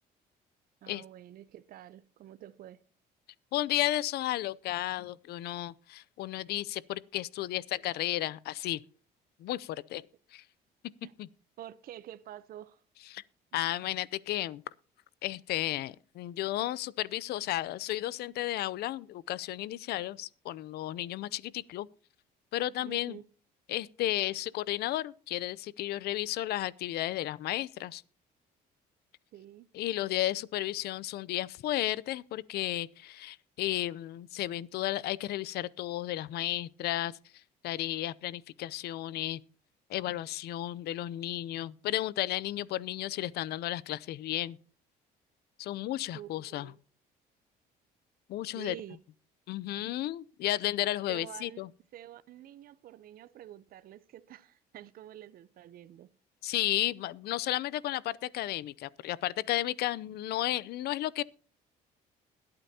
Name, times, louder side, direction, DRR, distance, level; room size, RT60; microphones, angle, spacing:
voice 1, 0.8-2.8 11.0-11.1 11.6-12.8 22.8-23.2 29.3-29.7 46.1-46.8 48.5-49.0 51.1-51.6 51.9-56.1, right 12 dB, 60° right, 0.7 m, -48 dB
voice 2, 3.5-8.8 9.4-10.0 10.3-10.4 11.2-11.3 13.0-13.2 13.5-14.6 15.2-21.9 22.5-23.2 23.7-28.0 29.7-39.4 39.9-44.6 45.6-46.7 48.3-48.8 49.5-51.7 56.4-61.2, left 15 dB, 70° left, 0.6 m, -33 dB
21.5 x 8.8 x 2.8 m
cardioid pair, 110°, 17 cm